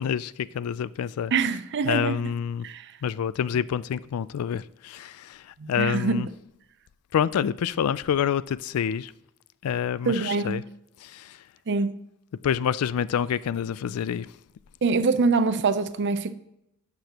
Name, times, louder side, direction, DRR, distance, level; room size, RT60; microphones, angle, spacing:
voice 1, 0.0-1.3 1.8-2.7 3.0-6.3 7.1-9.1 9.6-10.6 11.0-11.4 12.4-14.3, left 8 dB, 80° left, 0.3 m, -27 dB
voice 2, 1.3-2.2 2.6-2.8 5.6-6.3 10.1-10.6 11.7-12.0 14.8-16.3, right 4 dB, 55° right, 0.5 m, -24 dB
11.5 x 6.1 x 2.9 m
head